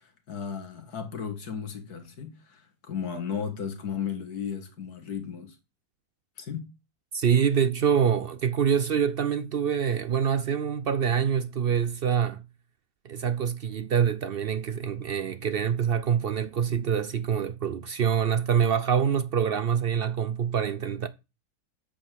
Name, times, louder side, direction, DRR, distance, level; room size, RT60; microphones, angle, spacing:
voice 1, 0.0-5.6 6.4-6.7, left 7 dB, 70° left, 2.3 m, -35 dB
voice 2, 7.1-12.4 13.0-21.1, right 7 dB, 70° right, 0.5 m, -25 dB
8.7 x 5.0 x 7.4 m
omnidirectional pair, 1.7 m